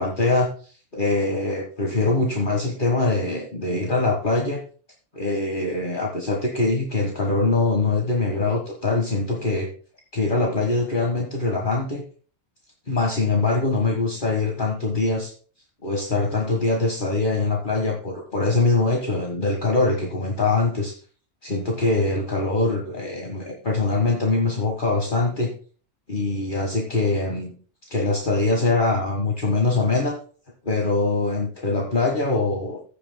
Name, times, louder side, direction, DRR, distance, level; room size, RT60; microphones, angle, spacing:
voice 1, 0.0-4.6 5.1-9.7 10.1-12.0 12.9-15.3 15.8-20.9 21.4-25.5 26.1-27.5 27.9-30.1 30.6-32.8, left 3 dB, 45° left, 1 dB, 1.8 m, -23 dB
15.0 x 8.6 x 2.2 m, 0.40 s
omnidirectional pair, 1.2 m